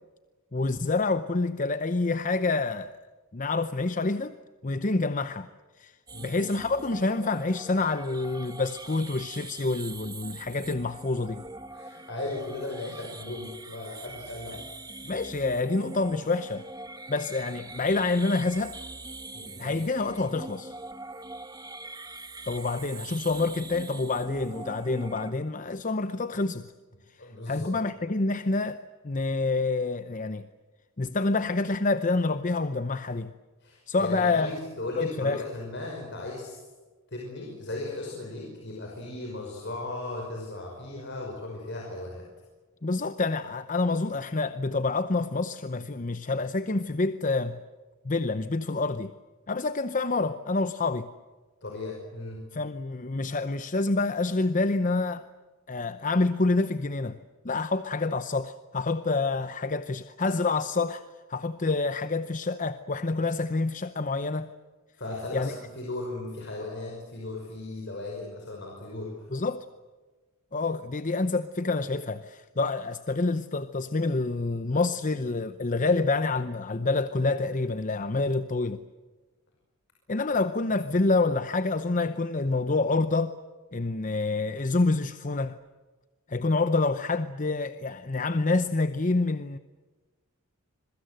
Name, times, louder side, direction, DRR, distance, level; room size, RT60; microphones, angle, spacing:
voice 1, 0.5-3.0 3.3-4.3 4.6-5.5 5.8-5.9 6.2-11.4 15.0-16.6 17.1-18.8 19.6-20.7 22.5-26.7 27.1-27.2 27.5-30.5 31.0-33.3 33.9-34.5 35.0-35.4 42.8-47.6 48.0-49.1 49.5-51.1 52.5-55.3 55.7-57.2 57.4-61.0 61.3-64.5 65.3-65.5 69.3-69.6 70.5-78.8 80.1-83.3 83.7-85.6 86.3-89.6, left 3 dB, 35° left, 0.8 m, -27 dB
sound 1, 6.1-25.3, right 2 dB, 20° right, 1.3 m, -43 dB
voice 2, 11.7-14.6 19.3-19.8 27.2-27.8 33.6-36.6 37.1-42.3 51.6-52.5 65.0-69.3, left 2 dB, 55° left, 5.9 m, -37 dB
26.5 x 23.0 x 7.8 m
head